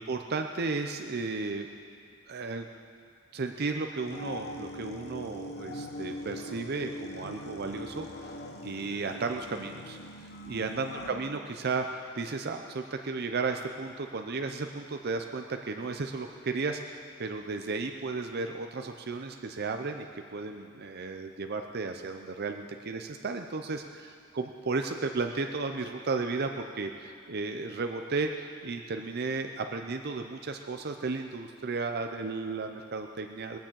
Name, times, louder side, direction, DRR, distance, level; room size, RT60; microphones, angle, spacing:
voice 1, 0.0-1.7 2.3-2.7 3.3-33.6, right 4 dB, 50° right, 5 dB, 0.6 m, -34 dB
sound 1, 4.0-11.1, left 1 dB, 55° left, 1.1 m, -42 dB
21.5 x 7.2 x 7.4 m, 2.2 s
head